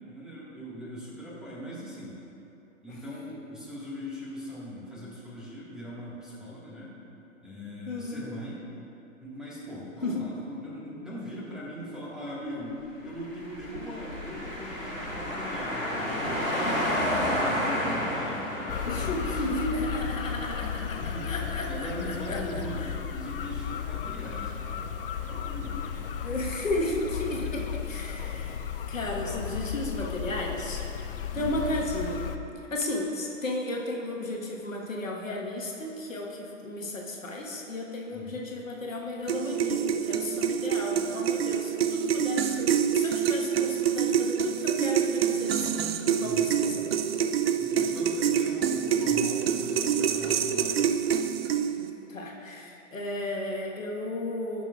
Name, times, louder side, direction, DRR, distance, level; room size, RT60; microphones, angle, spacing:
voice 1, 0.0-2.2 2.8-6.9 7.4-8.7 9.2-19.5 21.0-21.3 21.6-22.8 23.1-24.7 25.3-26.0 31.3-31.6 38.1-38.4 46.2-46.5 47.6-50.9, equal, ahead, -8 dB, 1.5 m, -40 dB
voice 2, 7.9-8.3 10.0-10.3 18.8-21.9 22.3-22.6 26.2-28.6 28.9-30.8 31.3-32.2 32.7-45.7 46.2-46.9 51.8-54.6, left 1 dB, 75° left, -1 dB, 1.4 m, -34 dB
sound 1, 13.4-20.2, left 1 dB, 90° left, 1.8 m, -31 dB
sound 2, 18.7-32.4, left 8 dB, 45° left, 0.5 m, -34 dB
sound 3, 39.3-51.9, right 8 dB, 50° right, 0.5 m, -26 dB
17.5 x 6.0 x 2.3 m, 2.9 s
figure-of-eight pair, 110°, 40 cm